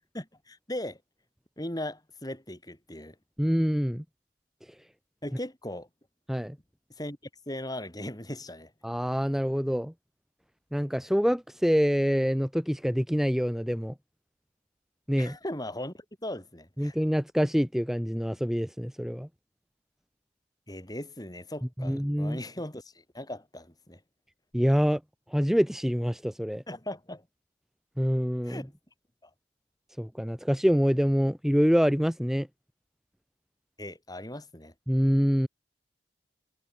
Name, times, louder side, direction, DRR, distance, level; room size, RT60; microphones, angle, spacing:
voice 1, 0.1-1.0 1.6-3.1 5.2-5.9 7.0-7.2 7.5-8.7 15.2-15.9 16.2-17.0 20.7-22.8 23.1-24.0 26.7-27.2 28.4-28.7 29.2-29.3 33.8-34.7, left 1 dB, 20° left, 7.8 m, -38 dB
voice 2, 3.4-4.0 6.3-6.6 8.8-9.9 10.7-13.9 15.1-15.4 16.8-19.3 21.8-22.4 24.5-25.0 25.3-26.6 28.0-28.6 30.0-32.5 34.9-35.5, equal, ahead, 1.6 m, -26 dB
head